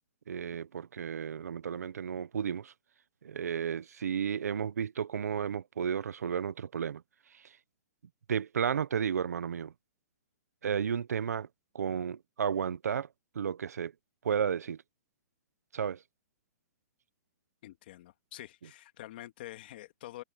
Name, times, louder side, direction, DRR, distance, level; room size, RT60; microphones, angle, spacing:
voice 1, 0.3-2.7 3.2-7.0 7.3-7.4 8.3-9.7 10.6-11.5 11.7-13.1 13.3-13.9 14.2-14.8 15.7-16.0, right 7 dB, 90° right, 1.0 m, -33 dB
voice 2, 17.6-20.2, left 15 dB, 40° left, 2.1 m, -47 dB
hypercardioid pair, 170°, 8 cm